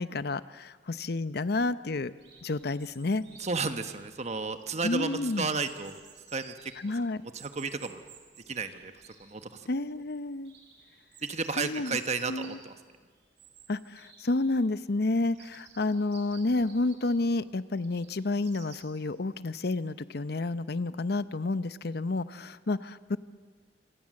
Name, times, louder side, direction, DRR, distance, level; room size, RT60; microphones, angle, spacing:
voice 1, 0.0-2.1 2.4-3.2 4.8-5.5 6.8-7.3 9.7-10.5 11.6-12.0 12.3-12.6 13.7-23.2, left 2 dB, 65° left, 14 dB, 0.7 m, -30 dB
Chirp tweet, 2.2-18.8, right 7 dB, 75° right, 4.8 m, -56 dB
voice 2, 3.4-6.0 6.3-6.7 7.3-8.0 8.5-9.7 11.2-12.7, right 4 dB, 40° right, 9 dB, 1.3 m, -33 dB
27.5 x 26.0 x 7.7 m, 1.5 s
head